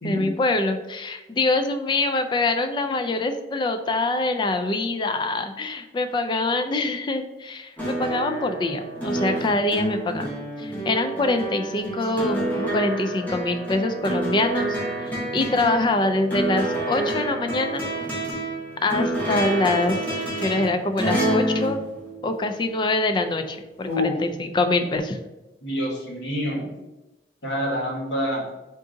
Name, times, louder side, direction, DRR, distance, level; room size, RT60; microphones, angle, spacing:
voice 1, 0.0-10.3 10.6-14.8 15.0-17.9 18.8-21.8 22.2-25.2, left 2 dB, 25° left, 7 dB, 0.3 m, -24 dB
sound 1, 7.8-22.7 23.9-24.0, right 1 dB, 10° left, 1.0 m, -28 dB
voice 2, 25.6-26.7 27.4-28.4, left 1 dB, 85° left, -2 dB, 1.2 m, -27 dB
3.7 x 2.6 x 3.7 m, 1.0 s
head